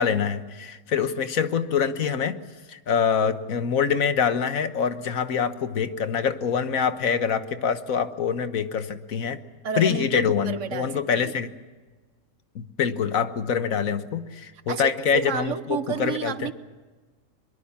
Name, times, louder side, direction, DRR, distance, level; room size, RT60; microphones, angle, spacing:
voice 1, 0.0-2.4 2.7-9.4 9.8-11.5 12.5-16.5, left 7 dB, 80° left, 11 dB, 1.6 m, -25 dB
voice 2, 9.6-11.4 14.7-16.5, right 7 dB, 65° right, 13 dB, 1.4 m, -31 dB
23.0 x 22.5 x 7.2 m, 1.4 s
omnidirectional pair, 1.4 m